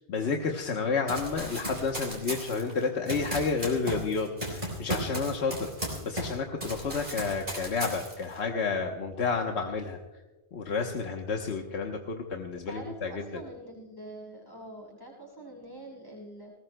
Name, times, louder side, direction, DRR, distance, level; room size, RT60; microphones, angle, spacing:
voice 1, 0.1-5.7 6.0-10.0 10.5-13.4, left 4 dB, 85° left, 2 dB, 1.3 m, -30 dB
Run, 1.1-6.3 6.6-8.4, right 1 dB, 50° right, 4.3 m, -35 dB
voice 2, 12.7-16.5, right 1 dB, 20° left, -3 dB, 6.4 m, -45 dB
20.5 x 19.5 x 2.2 m, 1.2 s
omnidirectional pair, 1.1 m